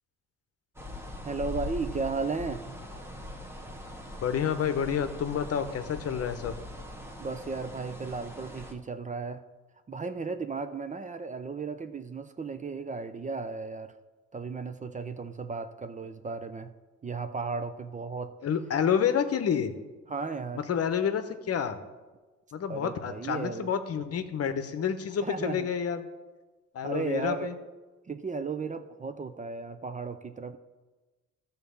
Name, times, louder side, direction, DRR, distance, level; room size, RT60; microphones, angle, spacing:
sound 1, 0.8-8.7, left 1 dB, 10° right, 1.2 m, -41 dB
voice 1, 1.2-2.6 7.2-9.4 9.9-13.9 14.3-16.7 17.0-18.3 20.1-20.6 22.7-23.7 25.2-25.7 26.8-27.5 28.1-30.6, right 4 dB, 25° right, 10 dB, 0.5 m, -35 dB
voice 2, 4.2-6.6 18.4-19.7 20.5-21.8 22.5-26.1 26.7-27.5, left 8 dB, 55° left, 9 dB, 0.9 m, -29 dB
12.0 x 4.0 x 6.9 m, 1.2 s
cardioid pair, 90°, 30 cm